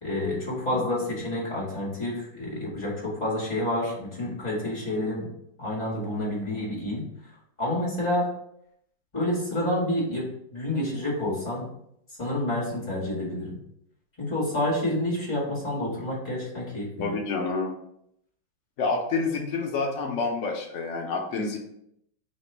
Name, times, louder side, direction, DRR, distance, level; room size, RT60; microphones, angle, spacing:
voice 1, 0.0-5.3 5.6-7.0 7.6-8.3 9.1-10.2 10.5-11.6 12.2-13.6 14.2-17.2, left 1 dB, 20° left, -6 dB, 1.7 m, -28 dB
voice 2, 17.0-17.7 18.8-21.7, left 4 dB, 90° left, 1 dB, 0.6 m, -28 dB
3.4 x 2.9 x 4.4 m, 0.75 s
omnidirectional pair, 2.1 m